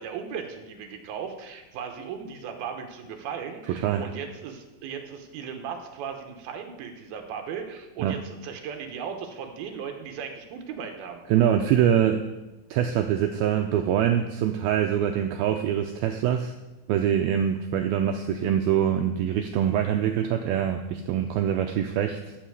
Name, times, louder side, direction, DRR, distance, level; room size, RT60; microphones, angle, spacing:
voice 1, 0.0-11.2, right 7 dB, 70° right, 5 dB, 2.7 m, -37 dB
voice 2, 3.7-4.0 8.0-8.2 11.3-12.2 12.7-16.5 16.9-22.2, right 9 dB, 85° right, 5 dB, 2.1 m, -24 dB
14.0 x 5.7 x 7.9 m, 1.0 s
omnidirectional pair, 5.0 m